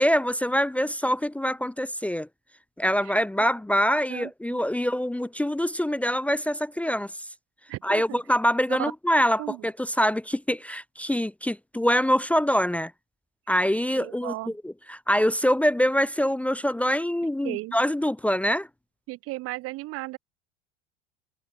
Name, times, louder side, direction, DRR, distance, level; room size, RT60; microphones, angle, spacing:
voice 1, 0.0-2.3 2.8-7.1 7.8-12.9 13.5-18.7, equal, 5° left, 0.8 m, -25 dB
voice 2, 4.1-4.6 7.7-8.2 8.8-8.9 9.4-9.6 13.9-14.5 17.4-17.8 19.1-20.2, right 20 dB, 45° right, 1.0 m, -35 dB
hypercardioid pair, 80°, 31 cm